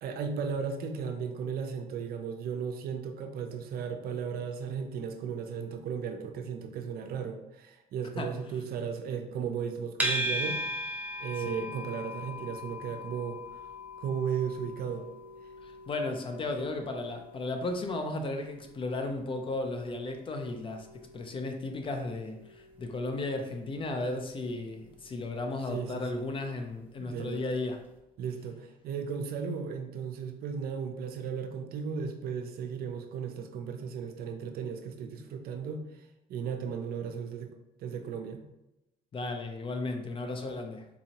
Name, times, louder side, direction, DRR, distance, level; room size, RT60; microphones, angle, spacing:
voice 1, 0.0-10.6 11.2-13.4 14.0-15.1 25.7-26.3 27.0-27.4 28.2-37.5 37.8-38.5, right 6 dB, 65° right, 6 dB, 0.5 m, -35 dB
sound 1, 10.0-27.2, equal, 10° right, 0.7 m, -40 dB
voice 2, 15.6-27.8 39.1-40.9, left 2 dB, 30° left, 5 dB, 0.5 m, -35 dB
4.0 x 2.7 x 2.8 m, 0.92 s
cardioid pair, 110°, 17 cm